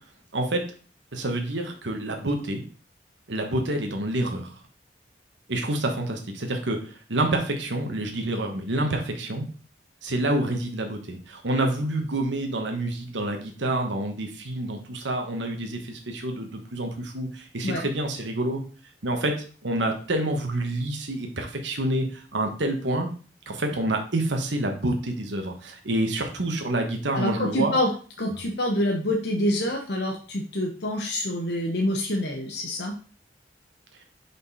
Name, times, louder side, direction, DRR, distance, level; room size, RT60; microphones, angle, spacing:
voice 1, 0.3-0.6 1.1-2.6 3.3-4.6 5.5-9.4 10.0-18.6 19.0-19.3 19.6-23.1 23.5-27.7, right 1 dB, 85° right, 4 dB, 1.2 m, -28 dB
voice 2, 27.1-27.9 28.2-33.0, left 1 dB, 70° left, 1 dB, 1.0 m, -26 dB
5.3 x 4.4 x 5.5 m, 0.40 s
head